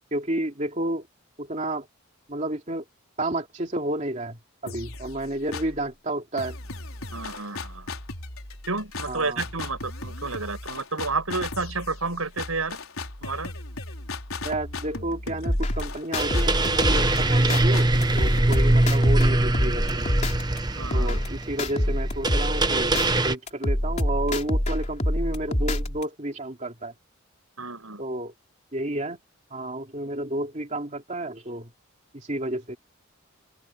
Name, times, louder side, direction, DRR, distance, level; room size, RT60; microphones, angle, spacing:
voice 1, 0.1-1.1 1.4-1.9 2.3-2.8 3.2-6.6 9.1-9.4 14.4-20.1 20.9-22.9 23.2-26.9 28.0-28.3 28.7-29.2 29.5-31.7 32.1-32.8, right 1 dB, 35° right, 2.7 m, -31 dB
sound 1, 4.7-5.9 6.4-20.1, left 2 dB, 80° left, 4.8 m, -37 dB
voice 2, 7.1-7.9 8.7-12.8 13.2-13.5 18.6-18.7 20.8-21.2 27.6-28.0, right 3 dB, 90° right, 7.7 m, -31 dB
sound 2, 15.5-17.6 18.0-20.6 20.9-23.1 23.5-26.0, left 1 dB, 35° left, 3.3 m, -26 dB
sound 3, 16.2-23.4, right 2 dB, 20° right, 0.9 m, -23 dB
head